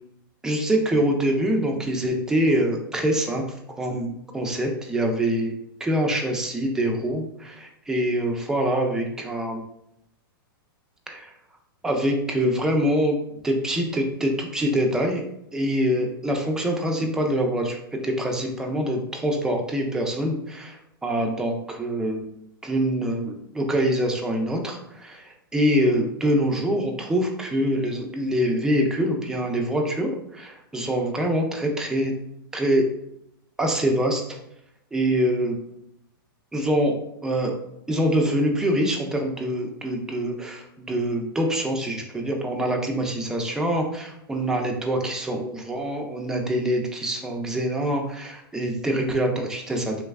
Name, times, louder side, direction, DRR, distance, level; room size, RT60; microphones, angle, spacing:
voice 1, 0.4-5.5 5.8-9.6 11.1-11.3 11.8-13.2 13.4-15.3 15.5-22.3 22.6-32.1 32.5-32.9 33.6-34.4 34.9-35.6 36.5-37.6 37.9-50.0, equal, 5° right, 1 dB, 0.4 m, -25 dB
3.1 x 3.1 x 2.4 m, 0.79 s
hypercardioid pair, 140°, 12 cm